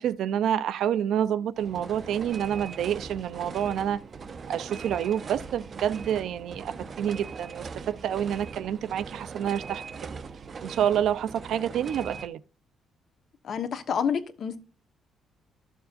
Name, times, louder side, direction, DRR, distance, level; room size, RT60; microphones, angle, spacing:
voice 1, 0.0-4.0 4.5-10.1 10.6-12.4, right 9 dB, 70° right, 0.6 m, -28 dB
sound 1, 1.6-12.3, right 5 dB, 35° right, 0.6 m, -40 dB
voice 2, 13.4-14.6, left 7 dB, 50° left, 1.2 m, -28 dB
14.0 x 7.1 x 2.6 m
cardioid pair, 160°, 0 cm